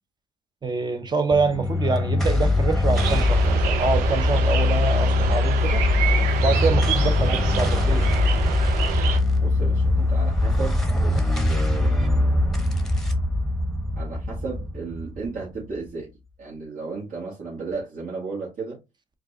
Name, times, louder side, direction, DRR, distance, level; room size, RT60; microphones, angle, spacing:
voice 1, 0.6-5.8 6.4-8.1, right 4 dB, 25° right, 0.8 m, -25 dB
sound 1, 1.3-15.9, left 2 dB, ahead, 1.0 m, -22 dB
sound 2, 2.9-9.2, right 8 dB, 80° right, 0.7 m, -28 dB
voice 2, 9.4-12.9 13.9-16.1 16.4-18.8, right 4 dB, 55° right, 1.7 m, -34 dB
4.5 x 2.4 x 2.7 m
supercardioid pair, 75°, 17 cm